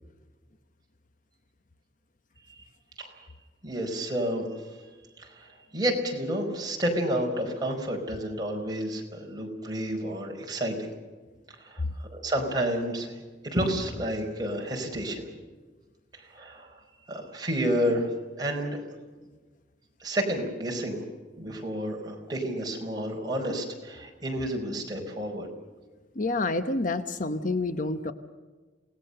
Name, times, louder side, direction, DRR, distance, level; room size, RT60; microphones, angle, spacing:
voice 1, 3.6-4.5 5.2-5.5 5.7-10.9 11.6-11.8 12.1-13.2 13.4-15.2 16.3-16.7 17.1-18.1 18.4-18.8 20.0-21.0 21.4-25.5, right 1 dB, 25° right, 0 dB, 4.8 m, -30 dB
voice 2, 26.2-28.1, left 2 dB, 50° left, 10 dB, 1.0 m, -28 dB
28.5 x 18.5 x 6.7 m, 1.3 s
head